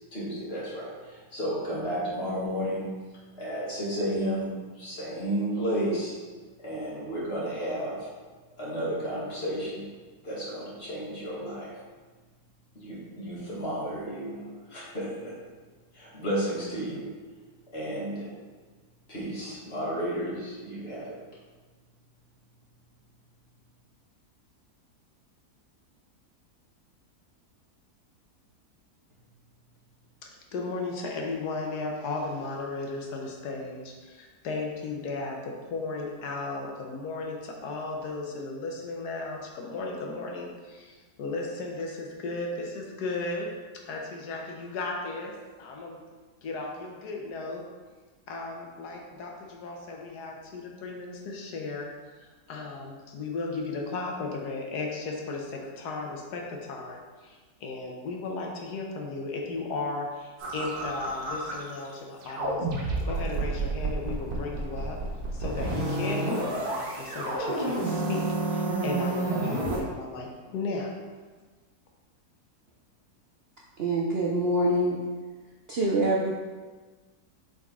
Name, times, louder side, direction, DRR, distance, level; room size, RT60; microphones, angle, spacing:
voice 1, 0.1-2.9 3.4-6.1 6.6-8.0 8.6-9.8 10.2-11.7 12.8-15.3 15.9-17.1 17.7-18.3 19.1-21.2, equal, 40° left, -7 dB, 2.1 m, -32 dB
voice 2, 30.2-43.5 43.9-46.0 46.4-47.6 48.3-51.9 52.2-65.0 65.3-70.9, left 3 dB, 80° left, 0 dB, 1.5 m, -35 dB
sound 1, 60.4-61.9 62.2-69.8, right 2 dB, 70° right, 1.7 m, -30 dB
voice 3, 73.8-75.0 75.7-76.3, right 1 dB, 55° right, -3 dB, 0.7 m, -25 dB
7.5 x 4.0 x 3.6 m, 1.4 s
omnidirectional pair, 1.7 m